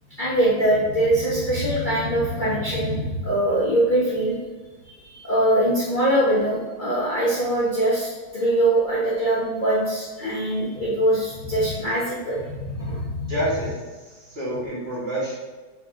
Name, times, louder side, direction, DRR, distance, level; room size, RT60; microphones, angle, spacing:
voice 1, 0.2-4.3 4.8-13.3, right 1 dB, 65° left, -9 dB, 0.4 m, -22 dB
voice 2, 13.3-15.3, right 1 dB, 35° right, -8 dB, 1.2 m, -28 dB
5.2 x 3.7 x 2.5 m, 1.3 s
omnidirectional pair, 2.3 m